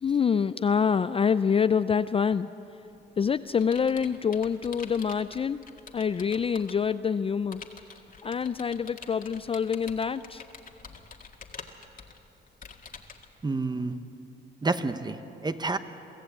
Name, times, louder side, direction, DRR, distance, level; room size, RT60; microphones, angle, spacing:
voice 1, 0.0-2.5 3.2-5.6 5.9-7.6 8.2-10.4, left 6 dB, 30° left, 13 dB, 0.4 m, -26 dB
Computer keyboard, 2.9-6.9 7.5-13.3, left 5 dB, 45° left, 1.8 m, -46 dB
voice 2, 13.4-14.0 14.6-15.8, right 3 dB, 20° right, 10 dB, 1.0 m, -29 dB
23.5 x 14.5 x 8.4 m, 3.0 s
cardioid pair, 90°, 20 cm